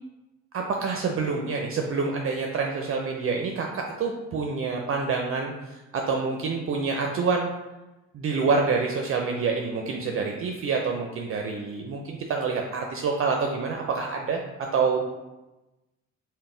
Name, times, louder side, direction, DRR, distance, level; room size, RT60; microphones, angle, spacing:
voice 1, 0.5-7.5 8.1-15.0, right 4 dB, 45° right, 1 dB, 0.4 m, -27 dB
3.8 x 2.1 x 3.7 m, 1.0 s
cardioid pair, 90°, 30 cm